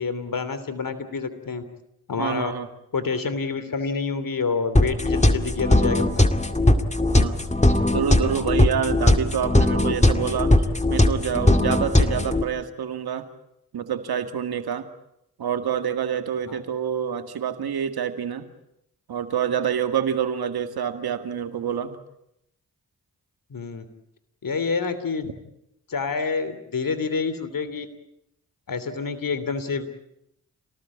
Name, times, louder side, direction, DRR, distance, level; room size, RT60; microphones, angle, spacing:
voice 1, 0.0-1.6 2.1-2.5 2.9-6.2 16.5-16.6 23.5-23.8 24.4-25.2 25.9-27.9 28.7-30.0, left 5 dB, 60° left, 13 dB, 3.2 m, -28 dB
voice 2, 2.2-2.7 7.1-7.4 7.9-10.5 10.9-13.3 13.7-14.9 15.4-18.5 19.1-22.0, right 8 dB, 80° right, 8 dB, 2.1 m, -27 dB
sound 1, 4.8-12.4, left 1 dB, 20° left, 2.2 m, -19 dB
28.0 x 19.0 x 8.6 m, 0.79 s
supercardioid pair, 40°, 37 cm